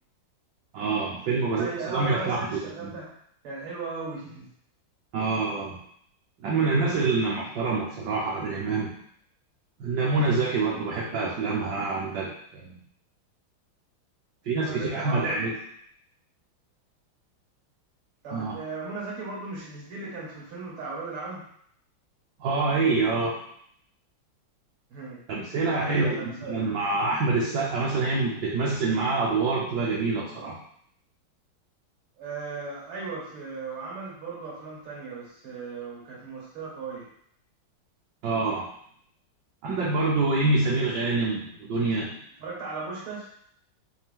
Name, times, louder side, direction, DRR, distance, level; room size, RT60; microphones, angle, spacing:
voice 1, 0.7-2.9 5.1-5.8 6.4-8.9 9.8-12.8 14.4-15.6 18.3-18.6 22.4-23.4 25.3-30.6 38.2-38.7 39.6-42.1, right 3 dB, 65° right, -4 dB, 1.2 m, -26 dB
voice 2, 1.6-3.1 3.4-4.5 14.6-15.5 18.2-21.5 24.9-25.2 25.7-26.6 32.2-37.1 40.4-40.5 42.4-43.3, right 3 dB, 85° right, -5 dB, 2.3 m, -36 dB
4.3 x 2.8 x 3.5 m, 0.67 s
omnidirectional pair, 2.3 m